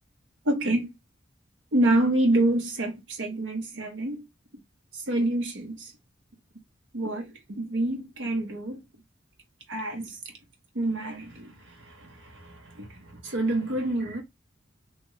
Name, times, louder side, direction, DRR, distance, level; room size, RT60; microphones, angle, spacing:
voice 1, 0.4-0.9 1.7-4.3 4.9-5.9 6.9-8.8 9.7-10.2 10.7-14.2, right 1 dB, 85° right, 0.9 m, -27 dB
2.9 x 2.4 x 2.9 m
head